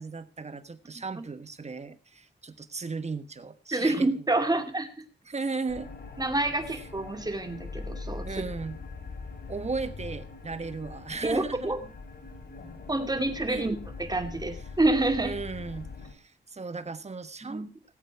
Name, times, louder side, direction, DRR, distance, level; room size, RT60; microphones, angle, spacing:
voice 1, 0.0-4.6 5.3-5.9 6.7-6.8 8.3-8.8 9.5-11.8 13.5-13.7 15.2-17.7, right 4 dB, 35° right, 11 dB, 1.2 m, -36 dB
voice 2, 3.7-4.9 6.2-8.3 11.2-11.8 12.9-15.3 17.4-17.7, right 2 dB, 20° right, 6 dB, 2.5 m, -27 dB
sound 1, 5.7-16.1, left 4 dB, 60° left, 2.8 m, -42 dB
18.0 x 8.1 x 4.6 m, 0.36 s
cardioid pair, 65°, 18 cm